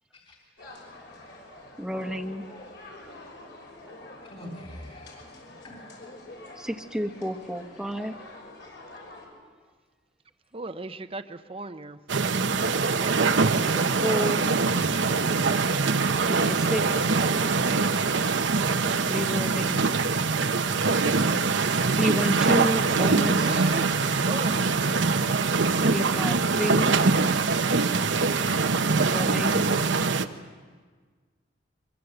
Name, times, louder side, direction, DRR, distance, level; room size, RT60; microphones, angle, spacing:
sound 1, 0.6-9.3, left 2 dB, 65° left, 6.0 m, -46 dB
voice 1, 1.8-2.4 6.6-8.2 13.6-14.5 16.0-17.0 19.0-19.9 22.0-23.6 25.8-26.9 29.0-29.7, equal, 5° right, 4 dB, 1.2 m, -30 dB
voice 2, 4.2-5.8 14.3-15.2, equal, 35° left, -1 dB, 3.3 m, -41 dB
voice 3, 10.5-12.0 13.0-13.6 16.6-17.4 23.5-23.9 24.3-24.7, right 3 dB, 30° right, 9 dB, 0.8 m, -37 dB
sound 2, 12.1-30.2, right 4 dB, 80° right, 1.0 m, -23 dB
24.0 x 22.5 x 7.9 m, 1.5 s
head